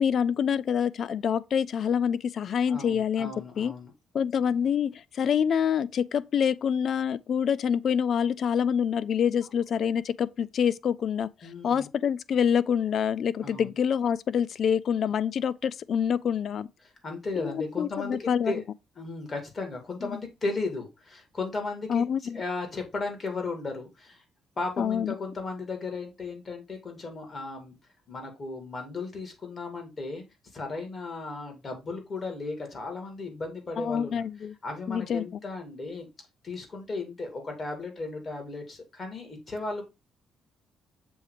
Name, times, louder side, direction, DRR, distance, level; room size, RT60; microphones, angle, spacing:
voice 1, 0.0-3.7 4.1-11.3 11.6-16.7 17.5-18.5 20.0-20.2 21.9-22.4 24.8-25.1 33.8-34.5 34.9-35.2, left 8 dB, 60° left, 0.4 m, -26 dB
voice 2, 2.7-3.9 11.4-11.9 13.4-13.7 16.8-18.6 19.0-22.0 22.3-24.2 24.6-27.7 28.1-30.2 30.5-34.2 34.6-36.1 36.4-39.8, left 3 dB, 35° left, 2.6 m, -35 dB
7.0 x 3.0 x 4.9 m
cardioid pair, 90°, 0 cm